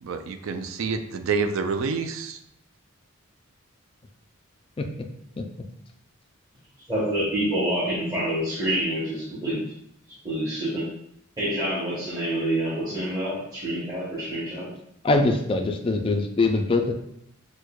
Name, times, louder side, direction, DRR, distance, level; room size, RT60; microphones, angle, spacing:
voice 1, 0.0-2.4, right 5 dB, 70° right, 7 dB, 0.4 m, -28 dB
voice 2, 6.9-9.6 10.2-10.9 11.4-14.7, right 1 dB, 20° right, -11 dB, 1.0 m, -27 dB
voice 3, 15.0-16.9, left 3 dB, 25° left, 4 dB, 0.3 m, -22 dB
6.1 x 2.2 x 2.3 m, 0.74 s
head